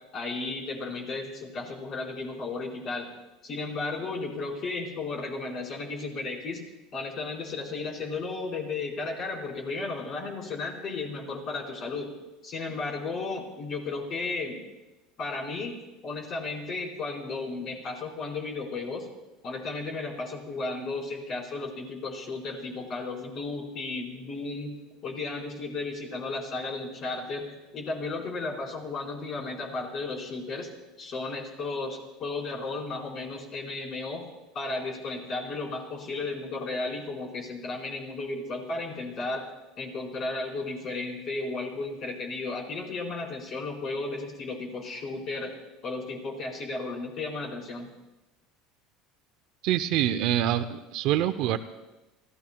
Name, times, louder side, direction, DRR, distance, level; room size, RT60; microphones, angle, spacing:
voice 1, 0.1-3.1 3.4-6.6 6.9-12.1 12.4-14.6 15.2-15.8 16.0-19.1 19.4-24.7 25.0-27.5 27.7-30.7 31.0-34.2 34.5-39.5 39.8-45.5 45.8-47.9, left 3 dB, 45° left, -1 dB, 4.5 m, -34 dB
voice 2, 49.6-51.6, right 12 dB, 60° right, 11 dB, 0.6 m, -25 dB
26.5 x 15.5 x 2.3 m, 1.1 s
supercardioid pair, 120°, 0 cm